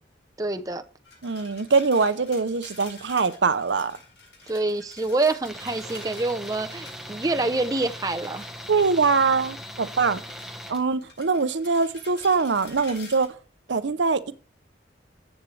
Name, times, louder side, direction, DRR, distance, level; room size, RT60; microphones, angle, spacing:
voice 1, 0.4-0.8 4.5-8.5, right 2 dB, 20° right, 0.6 m, -26 dB
sound 1, 1.0-9.6 10.0-13.3, left 4 dB, 70° left, 6.8 m, -48 dB
voice 2, 1.2-4.0 8.7-10.2 10.7-13.3 13.7-14.3, right 4 dB, 75° right, 0.7 m, -23 dB
Tools, 5.4-10.8, equal, ahead, 1.3 m, -39 dB
14.0 x 8.1 x 3.3 m
head